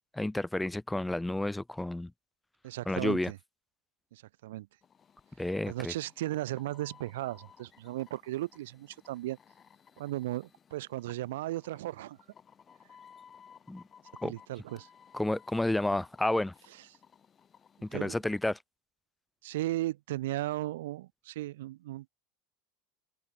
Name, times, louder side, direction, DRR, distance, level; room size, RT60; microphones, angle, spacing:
voice 1, 0.1-2.1 2.9-3.3 5.4-5.9 13.7-13.8 14.2-14.3 15.1-16.5 17.8-18.6, left 1 dB, 5° left, 0.4 m, -31 dB
voice 2, 2.6-3.4 4.1-4.7 5.7-9.4 10.0-12.2 14.2-14.9 17.9-18.2 19.4-22.1, right 16 dB, 85° right, 0.4 m, -36 dB
sound 1, 4.8-18.4, left 7 dB, 20° left, 2.7 m, -59 dB
open air
supercardioid pair, 155°, 0 cm